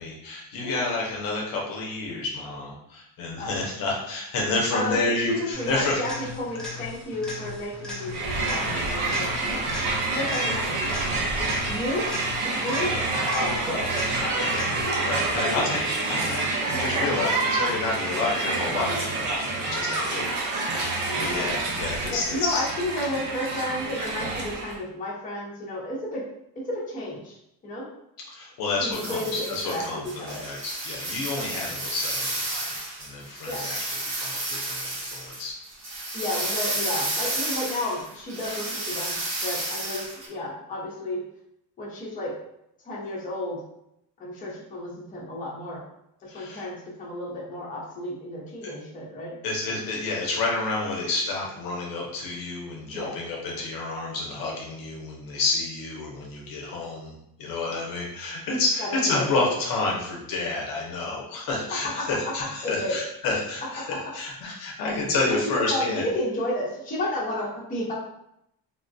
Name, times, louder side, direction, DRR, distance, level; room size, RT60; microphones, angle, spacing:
voice 1, 0.0-6.0 14.4-14.5 15.0-20.4 20.7-22.6 28.3-32.7 33.0-33.8 34.1-35.5 46.3-46.6 49.4-57.1 57.4-63.9 64.1-66.0, left 3 dB, 60° left, -2 dB, 0.7 m, -29 dB
voice 2, 4.7-9.7 10.1-11.0 11.6-12.2 12.5-15.0 15.4-15.7 16.9-17.1 21.0-21.5 22.1-26.2 26.7-27.4 27.6-27.8 28.8-29.8 30.2-30.4 33.5-33.7 36.1-41.2 41.8-42.3 42.8-43.6 44.2-45.8 46.2-49.4 52.9-53.2 57.7-57.8 58.8-59.5 62.6-63.0 65.5-67.9, left 1 dB, 20° left, -6 dB, 0.8 m, -32 dB
sound 1, 5.5-15.1 23.1-23.2, left 3 dB, ahead, 0.3 m, -38 dB
Crowd, 8.1-24.8, right 3 dB, 50° right, 0.7 m, -28 dB
sound 2, 28.9-40.3, right 2 dB, 85° right, 1.5 m, -32 dB
3.5 x 2.2 x 2.6 m, 0.78 s
cardioid pair, 170°, 38 cm